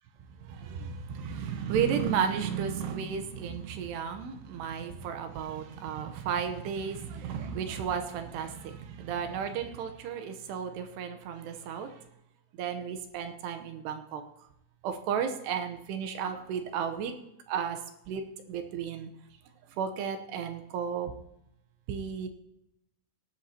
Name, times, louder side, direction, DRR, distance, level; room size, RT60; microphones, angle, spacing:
voice 1, 0.5-11.9 12.6-14.2 14.8-17.1 17.5-17.8 18.1-18.2 18.5-19.1 19.8-21.1 21.9-22.3, right 7 dB, 75° right, 7 dB, 2.6 m, -33 dB
18.0 x 10.5 x 2.8 m, 0.80 s
omnidirectional pair, 5.7 m